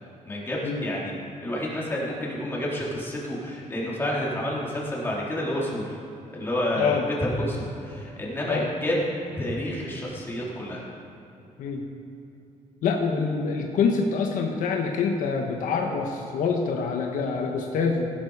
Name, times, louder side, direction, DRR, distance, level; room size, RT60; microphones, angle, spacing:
voice 1, 0.2-1.1 1.4-6.0 6.3-9.0 9.4-10.8, left 1 dB, 15° left, -5 dB, 3.3 m, -29 dB
voice 2, 12.8-18.1, left 5 dB, 75° left, 2 dB, 1.2 m, -26 dB
16.0 x 11.5 x 4.8 m, 2.8 s
cardioid pair, 160°, 14 cm